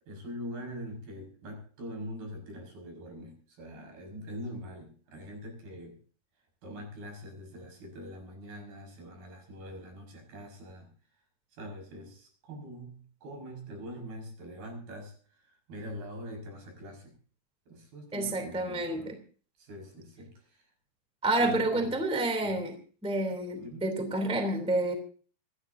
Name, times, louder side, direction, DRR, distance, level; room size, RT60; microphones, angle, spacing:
voice 1, 0.1-6.0 6.6-10.9 11.5-17.2 17.7-19.1 19.6-20.7 21.4-21.9 22.4-22.6 23.6-24.0, equal, 70° right, 2 dB, 7.3 m, -43 dB
voice 2, 18.1-19.2 21.2-22.7 23.0-24.9, right 2 dB, ahead, 5 dB, 2.2 m, -29 dB
27.5 x 13.0 x 2.7 m, 0.41 s
omnidirectional pair, 4.5 m